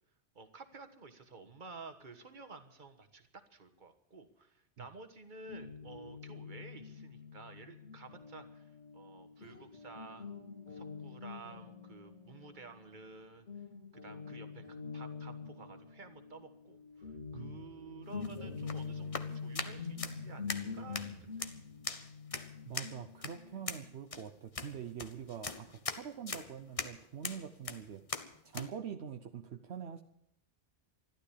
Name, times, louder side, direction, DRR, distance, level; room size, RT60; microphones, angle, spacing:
voice 1, 0.3-10.3 10.7-13.5 13.9-21.5, right 4 dB, 45° right, 7 dB, 1.6 m, -52 dB
Guitar, 5.5-13.2 13.5-23.9, left 5 dB, 75° left, 2.4 m, -45 dB
sound 1, 18.1-28.7, left 4 dB, 35° left, 0.9 m, -42 dB
voice 2, 22.7-28.0 28.4-30.0, right 8 dB, 70° right, 6 dB, 1.1 m, -44 dB
13.5 x 12.0 x 8.5 m, 0.77 s
omnidirectional pair, 1.2 m